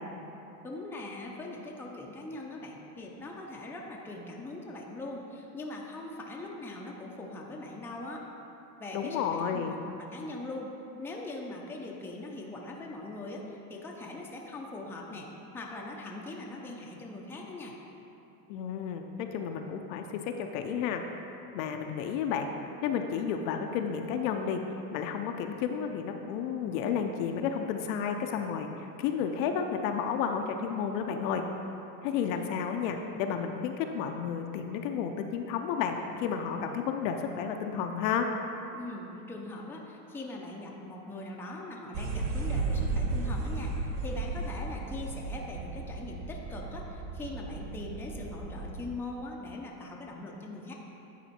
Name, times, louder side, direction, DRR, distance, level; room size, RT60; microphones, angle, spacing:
voice 1, 0.6-8.3 8.8-15.3 15.5-17.7 38.7-50.7, left 2 dB, 5° left, -2 dB, 0.6 m, -41 dB
voice 2, 8.9-9.8 18.5-21.0 21.5-22.5 22.8-24.6 24.9-31.4 32.0-38.3, left 7 dB, 55° left, 5 dB, 0.7 m, -32 dB
sound 1, 41.9-48.8, right 3 dB, 45° right, 0.9 m, -34 dB
10.0 x 4.3 x 4.3 m, 2.9 s
hypercardioid pair, 110°, 48 cm